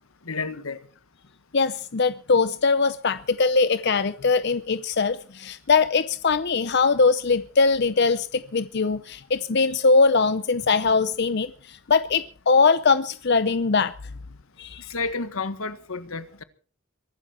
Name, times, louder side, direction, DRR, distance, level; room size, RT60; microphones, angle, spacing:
voice 1, 0.2-0.8 14.9-16.4, left 4 dB, 85° left, 1.6 m, -31 dB
voice 2, 1.5-13.9 14.6-14.9, left 4 dB, 55° left, 0.7 m, -21 dB
23.0 x 12.5 x 4.4 m
head